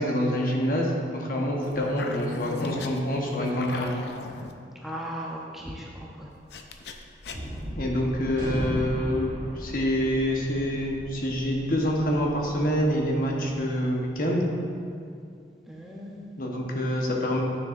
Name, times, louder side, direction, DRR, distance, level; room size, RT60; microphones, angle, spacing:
voice 1, 0.0-3.9 7.8-9.3 9.6-14.5 16.4-17.4, equal, 50° left, -1 dB, 1.0 m, -26 dB
sound 1, 1.6-4.5 6.5-7.7, left 3 dB, 70° left, 0.5 m, -38 dB
voice 2, 4.8-6.3 15.7-16.3, equal, ahead, -4 dB, 0.6 m, -37 dB
Gunshot gunfire, 7.3-13.9, equal, 45° right, 1.5 m, -37 dB
9.6 x 6.5 x 2.5 m, 2.4 s
head